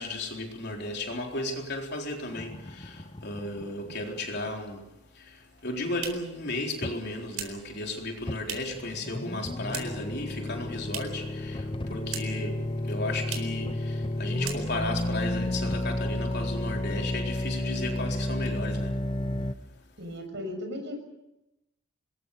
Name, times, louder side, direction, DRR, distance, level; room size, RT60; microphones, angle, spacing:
voice 1, 0.0-19.0 19.6-19.7, left 2 dB, 55° left, 4.1 m, -35 dB
sound 1, 2.3-4.4 6.8-7.0 8.3-8.4 8.7-19.5, left 1 dB, 25° left, 0.8 m, -32 dB
sound 2, 5.5-8.9 9.2-10.1 10.4-11.3 11.6-12.5 12.8-12.9 13.2-13.6 14.0-14.1 14.4-15.0, right 8 dB, 90° right, 4.3 m, -40 dB
voice 2, 20.0-21.0, left 1 dB, 60° right, 6.6 m, -36 dB
26.0 x 21.5 x 6.7 m
head